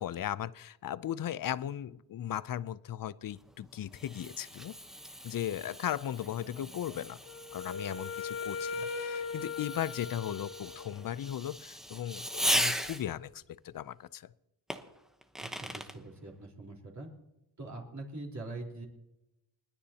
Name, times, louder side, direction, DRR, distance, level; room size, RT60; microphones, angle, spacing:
voice 1, 0.0-4.7 5.2-7.2 7.5-14.3, left 11 dB, 50° left, 18 dB, 0.6 m, -37 dB
Fireworks, 3.3-13.3 14.7-16.0, equal, ahead, 1.0 m, -38 dB
Wind instrument woodwind instrument, 7.2-11.1, left 5 dB, 90° left, 1.2 m, -39 dB
voice 2, 15.4-17.1 17.6-18.9, right 2 dB, 40° right, -2 dB, 3.9 m, -43 dB
29.5 x 10.0 x 2.9 m, 0.92 s
cardioid pair, 100°, 45 cm